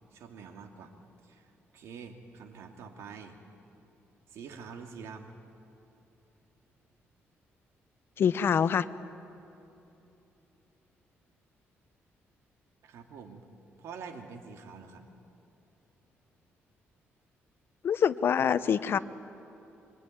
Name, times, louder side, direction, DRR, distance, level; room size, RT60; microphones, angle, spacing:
voice 1, 0.1-0.9 1.2-3.4 4.3-5.3 12.8-13.4 13.8-15.1, right 5 dB, 80° right, 5 dB, 2.7 m, -46 dB
voice 2, 8.2-8.8 17.8-19.0, left 8 dB, 55° left, 14 dB, 0.9 m, -25 dB
26.0 x 24.5 x 9.4 m, 3.0 s
cardioid pair, 110°, 5 cm